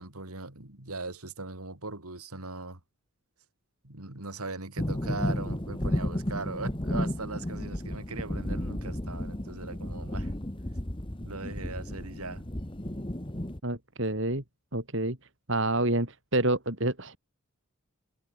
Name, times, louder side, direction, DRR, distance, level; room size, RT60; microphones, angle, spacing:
voice 1, 0.0-2.8 3.8-10.3 11.2-12.5, right 3 dB, 85° right, 3.7 m, -39 dB
sound 1, 4.8-13.6, left 1 dB, 20° left, 1.5 m, -33 dB
voice 2, 13.6-14.4 14.7-15.2 15.5-17.2, right 2 dB, 55° right, 3.8 m, -28 dB
head